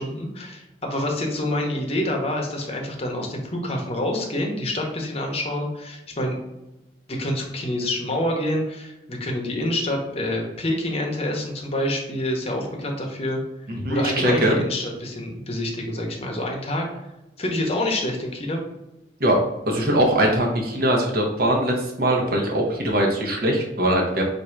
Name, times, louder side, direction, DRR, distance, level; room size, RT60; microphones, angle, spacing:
voice 1, 0.0-6.4 7.1-13.4 13.9-16.9 17.4-18.6, left 1 dB, 35° left, 1 dB, 0.8 m, -27 dB
voice 2, 13.7-14.6 19.2-19.4 19.7-24.2, right 1 dB, 55° right, 0 dB, 0.9 m, -21 dB
3.7 x 2.6 x 4.4 m, 0.96 s
head